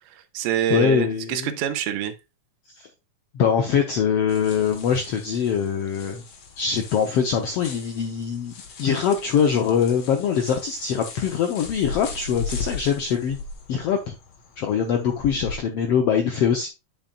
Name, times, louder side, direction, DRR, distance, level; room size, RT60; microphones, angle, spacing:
voice 1, 0.1-2.2, right 10 dB, 85° right, 2.3 m, -26 dB
voice 2, 0.7-1.5 2.8-2.9 3.3-6.2 6.6-8.5 8.8-13.4 13.7-14.2 14.6-16.7, left 7 dB, 80° left, 1.4 m, -23 dB
sound 1, 4.3-15.6, left 5 dB, 55° left, 2.2 m, -38 dB
9.0 x 5.8 x 2.4 m
omnidirectional pair, 3.8 m